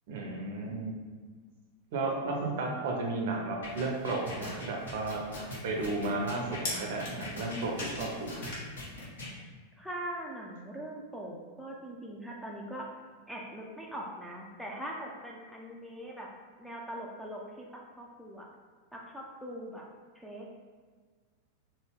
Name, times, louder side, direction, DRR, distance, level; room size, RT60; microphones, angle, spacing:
voice 1, 0.1-0.9 1.9-5.2 5.6-8.3, right 3 dB, 55° right, 0 dB, 0.6 m, -33 dB
sound 1, 3.6-9.3, left 1 dB, 65° left, 0.9 m, -41 dB
sound 2, 3.6-9.0, left 2 dB, 50° left, 1.2 m, -44 dB
voice 2, 9.8-12.9 13.3-16.3 16.6-18.5 18.9-19.8 20.1-20.5, right 1 dB, ahead, -3 dB, 0.5 m, -41 dB
3.6 x 2.1 x 3.8 m, 1.5 s
figure-of-eight pair, 90°, 0 cm